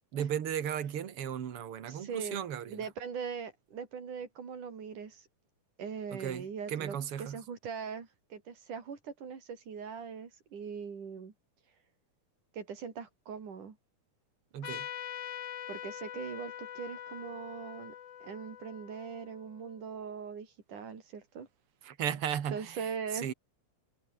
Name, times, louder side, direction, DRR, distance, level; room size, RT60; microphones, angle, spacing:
voice 1, 0.1-2.8 6.1-7.4 14.5-14.9 21.8-23.3, right 9 dB, 50° right, 2.5 m, -36 dB
voice 2, 1.9-2.4 2.7-5.3 5.8-11.3 12.5-13.8 15.7-17.9 18.2-21.5 22.5-23.3, right 6 dB, 85° right, 5.2 m, -41 dB
Trumpet, 14.6-19.7, left 10 dB, 80° left, 3.2 m, -44 dB
omnidirectional pair, 3.5 m